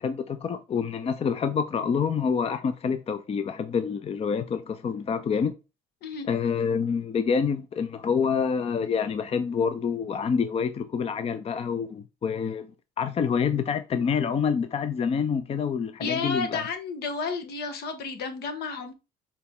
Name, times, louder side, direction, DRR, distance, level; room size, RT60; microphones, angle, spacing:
voice 1, 0.0-5.5 6.3-12.7 13.0-16.7, left 6 dB, 35° left, 0.6 m, -27 dB
voice 2, 16.0-18.9, left 4 dB, 75° left, 1.6 m, -32 dB
6.8 x 4.2 x 3.7 m
cardioid pair, 110°, 17 cm